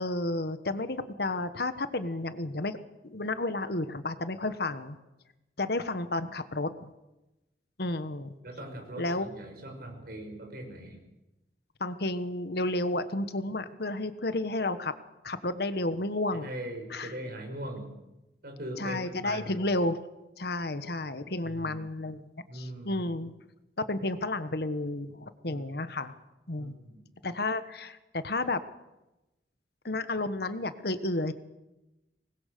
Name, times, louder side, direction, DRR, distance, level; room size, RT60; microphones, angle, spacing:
voice 1, 0.0-2.8 3.0-5.0 5.6-6.9 7.8-8.3 9.0-9.3 11.8-14.9 15.2-16.5 16.9-17.1 18.8-20.0 20.4-23.3 23.9-26.1 26.5-26.7 27.2-28.6 29.8-31.3, left 2 dB, 60° left, 11 dB, 1.4 m, -31 dB
voice 2, 8.4-11.0 16.3-17.9 18.4-19.6 21.4-21.9 22.5-23.0 25.4-25.7 26.6-27.0, right 1 dB, 55° right, 3 dB, 6.3 m, -41 dB
25.0 x 20.5 x 6.8 m, 0.99 s
head